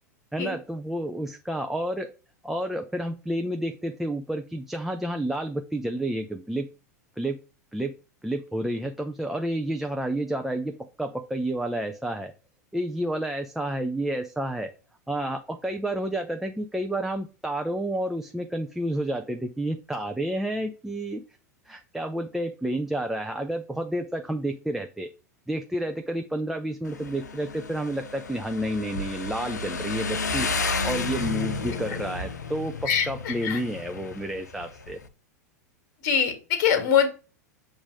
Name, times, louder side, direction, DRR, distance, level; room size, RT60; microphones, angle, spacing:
voice 1, 0.3-2.1 2.4-6.7 7.2-7.4 7.7-7.9 8.2-12.3 12.7-14.7 15.1-21.2 21.7-25.1 25.5-30.5 30.8-35.0, right 1 dB, 5° right, 4 dB, 0.5 m, -30 dB
Motorcycle, 26.8-35.1, left 4 dB, 80° left, 0.7 m, -32 dB
voice 2, 32.9-33.6 36.0-37.1, left 8 dB, 50° left, 7 dB, 1.6 m, -23 dB
7.1 x 2.7 x 4.9 m, 0.34 s
figure-of-eight pair, 95°, 9 cm